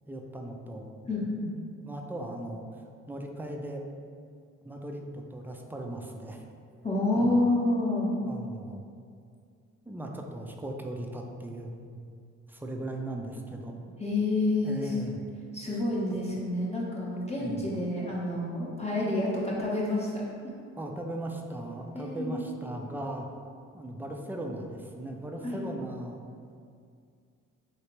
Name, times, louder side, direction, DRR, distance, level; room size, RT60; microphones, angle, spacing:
voice 1, 0.1-0.9 1.8-2.6 3.1-3.9 4.6-6.4 7.1-7.3 8.2-8.9 9.9-12.0 12.5-13.9 14.6-15.2 17.4-17.7 20.8-23.3 23.7-26.2, right 1 dB, 5° right, 2 dB, 0.4 m, -38 dB
voice 2, 1.0-1.4 6.8-8.1 14.0-14.9 15.5-20.1 21.9-22.5 25.4-25.6, left 2 dB, 20° left, -6 dB, 0.8 m, -28 dB
3.2 x 2.8 x 3.0 m, 2.3 s
supercardioid pair, 55°, 32 cm